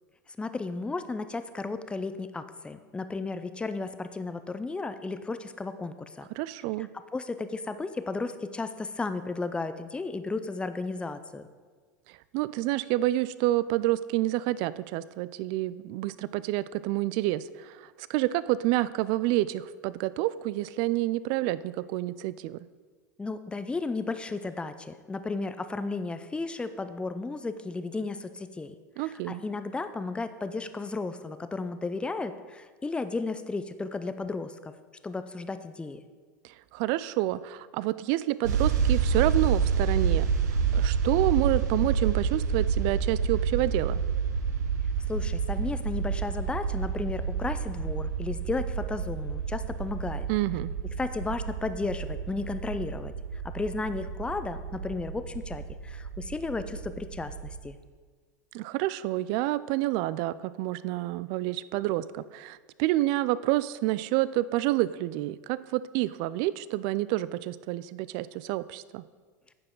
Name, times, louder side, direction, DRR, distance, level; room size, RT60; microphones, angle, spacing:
voice 1, 0.4-6.3 7.1-11.5 23.2-34.7 35.0-36.0 45.1-50.3 51.0-57.8, left 3 dB, 10° left, 11 dB, 0.5 m, -34 dB
voice 2, 6.4-6.9 12.3-22.6 29.0-29.4 36.4-44.0 50.3-50.7 58.5-69.0, right 16 dB, 55° right, 17 dB, 0.4 m, -28 dB
sound 1, 38.4-57.6, right 6 dB, 75° right, 1.0 m, -29 dB
9.6 x 6.7 x 3.8 m, 1.5 s
hypercardioid pair, 95°, 9 cm